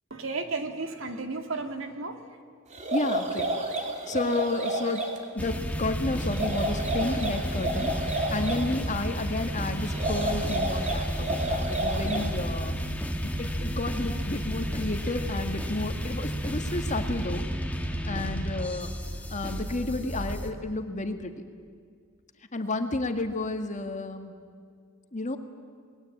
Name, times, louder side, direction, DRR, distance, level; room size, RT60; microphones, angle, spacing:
voice 1, 0.1-2.2, right 3 dB, 70° right, 6 dB, 2.3 m, -33 dB
sound 1, 2.7-5.2 6.2-8.7 9.8-12.4, right 1 dB, 35° right, 3.0 m, -31 dB
voice 2, 2.9-3.5 4.1-5.0 5.3-7.9 8.3-12.8 13.2-17.5 18.0-18.9 19.3-21.5 22.5-24.3 25.1-25.4, left 2 dB, 35° left, 6 dB, 1.8 m, -31 dB
sound 2, 5.4-20.5, equal, 5° left, 1.8 m, -32 dB
28.5 x 20.5 x 8.7 m, 2.1 s
head